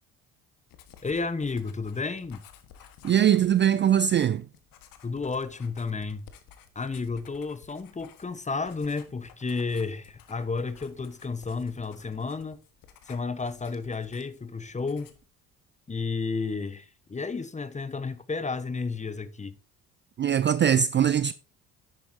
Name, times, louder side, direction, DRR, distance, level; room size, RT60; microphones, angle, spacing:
Writing, 0.7-14.5 14.8-15.3, left 9 dB, 60° left, 1.5 m, -54 dB
voice 1, 1.0-2.4 5.0-6.3 6.7-12.6 13.1-15.1 15.9-19.6, left 4 dB, 20° left, 1.0 m, -32 dB
voice 2, 3.0-4.4 20.2-21.3, right 9 dB, 30° right, 0.4 m, -21 dB
10.5 x 8.9 x 2.7 m
hypercardioid pair, 55°, 38 cm